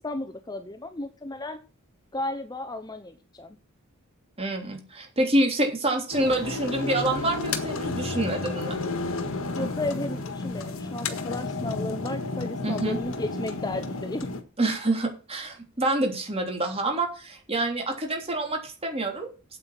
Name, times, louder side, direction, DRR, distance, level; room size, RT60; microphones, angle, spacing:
voice 1, 0.0-1.6 2.1-3.6 9.6-14.3, left 2 dB, 20° left, 9 dB, 0.7 m, -34 dB
voice 2, 4.4-8.8 12.6-13.0 14.6-19.3, right 1 dB, 25° right, 3 dB, 3.4 m, -27 dB
sound 1, 6.1-14.4, left 3 dB, 65° left, 1.6 m, -32 dB
8.6 x 8.1 x 5.9 m, 0.34 s
head